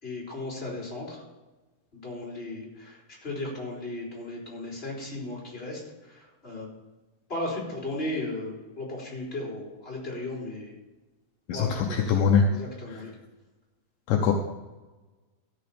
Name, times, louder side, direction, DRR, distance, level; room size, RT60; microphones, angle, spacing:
voice 1, 0.0-1.2 1.9-6.7 7.3-10.7 11.5-12.2 12.5-13.1, left 2 dB, 15° left, -4 dB, 3.7 m, -36 dB
voice 2, 11.5-12.5 14.1-14.3, left 7 dB, 75° left, 2 dB, 2.3 m, -22 dB
13.5 x 5.8 x 6.9 m, 1.2 s
omnidirectional pair, 4.1 m